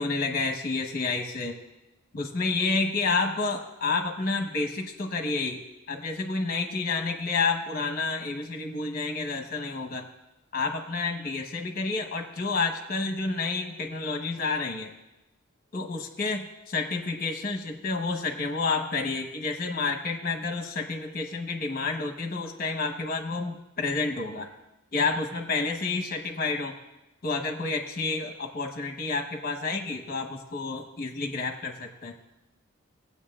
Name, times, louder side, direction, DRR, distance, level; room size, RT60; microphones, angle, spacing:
voice 1, 0.0-1.5 2.1-5.6 5.9-10.0 10.5-14.9 15.7-24.5 24.9-26.7 27.2-32.1, left 3 dB, 45° left, 2 dB, 1.1 m, -29 dB
18.0 x 8.2 x 2.4 m, 0.98 s
head